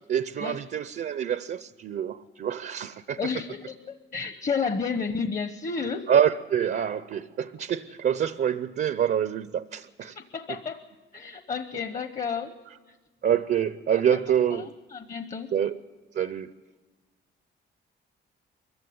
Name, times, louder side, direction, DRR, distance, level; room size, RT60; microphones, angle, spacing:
voice 1, 0.0-3.2 6.1-10.2 13.2-14.7 15.5-15.8 16.1-16.5, right 9 dB, 55° right, 14 dB, 0.6 m, -26 dB
voice 2, 3.2-6.1 10.0-10.8 11.1-12.5 12.9-13.0 13.9-14.2 14.5-15.5, left 5 dB, 35° left, 9 dB, 1.0 m, -32 dB
23.5 x 15.0 x 9.4 m, 1.3 s
cardioid pair, 90°, 20 cm